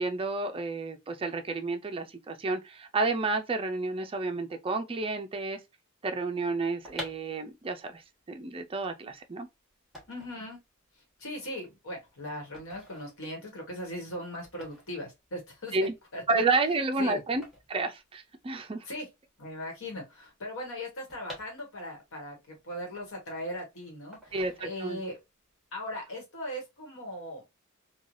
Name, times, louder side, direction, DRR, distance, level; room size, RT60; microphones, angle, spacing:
voice 1, 0.0-5.6 6.0-8.0 8.3-9.5 15.7-15.9 16.3-17.4 17.7-18.9 24.3-25.0, right 3 dB, 25° right, 0.4 m, -30 dB
sound 1, 6.8-18.7 19.0-19.1 19.3-22.1 22.5-23.6 24.1-25.1 25.5-25.8, equal, ahead, 1.2 m, -48 dB
voice 2, 10.1-10.6 11.2-15.8 16.1-16.4 17.0-17.2 18.9-19.1 19.4-25.2 25.7-27.4, left 1 dB, 65° left, 1.3 m, -39 dB
3.2 x 2.3 x 2.5 m
head